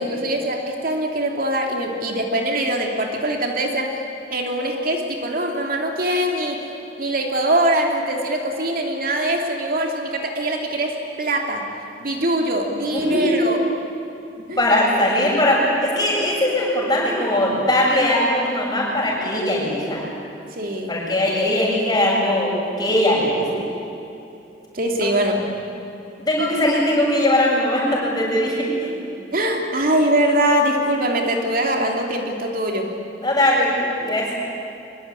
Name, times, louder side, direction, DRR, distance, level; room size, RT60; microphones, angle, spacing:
voice 1, 0.0-3.9 4.3-6.6 7.0-11.6 12.0-13.6 14.5-14.6 20.5-21.0 24.7-25.5 29.3-32.9, right 1 dB, 55° right, 2 dB, 2.7 m, -22 dB
voice 2, 12.9-13.3 14.6-20.0 20.9-23.5 26.2-29.0 33.2-34.3, left 1 dB, 25° left, -3 dB, 7.9 m, -20 dB
24.0 x 22.5 x 9.9 m, 2.8 s
head